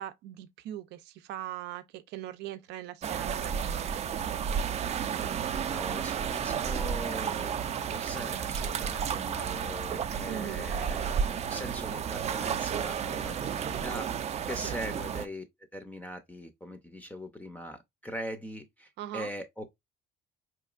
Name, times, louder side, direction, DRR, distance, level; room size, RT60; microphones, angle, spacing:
voice 1, 0.0-3.9 10.3-10.7 14.6-14.8 19.0-19.3, right 12 dB, 85° right, 0.6 m, -40 dB
sound 1, 3.0-15.3, right 7 dB, 40° right, 0.5 m, -32 dB
voice 2, 5.7-14.1 14.4-15.4 15.7-19.6, equal, 10° left, 0.5 m, -41 dB
4.4 x 3.0 x 2.4 m
cardioid pair, 110°, 17 cm